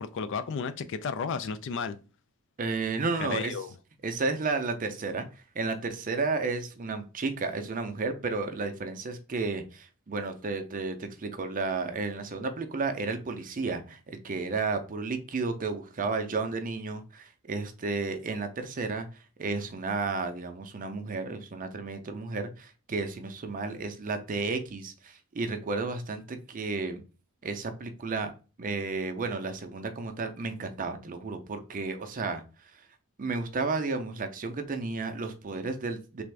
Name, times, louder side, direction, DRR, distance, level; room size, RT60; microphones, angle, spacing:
voice 1, 0.0-2.0 3.2-3.7, left 5 dB, 60° left, 0.4 m, -33 dB
voice 2, 2.6-3.6 4.0-5.3 5.5-19.1 19.4-27.0 27.4-28.3 28.6-32.4 32.7-32.8 33.2-36.2, right 3 dB, 40° right, 0.5 m, -32 dB
3.4 x 2.5 x 3.2 m
head